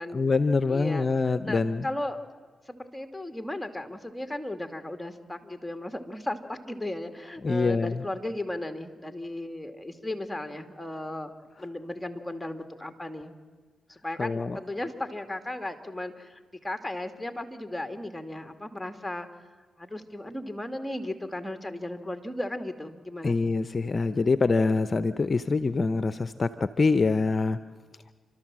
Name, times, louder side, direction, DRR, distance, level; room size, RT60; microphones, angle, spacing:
voice 1, 0.1-1.8 7.4-8.0 14.2-14.6 23.2-27.6, left 4 dB, 45° left, 13 dB, 0.7 m, -25 dB
voice 2, 0.7-2.2 2.7-11.3 11.6-13.3 13.9-19.3 19.8-23.5, left 1 dB, 5° left, 6 dB, 2.3 m, -35 dB
29.5 x 13.0 x 7.6 m, 1.4 s
supercardioid pair, 50°, 0 cm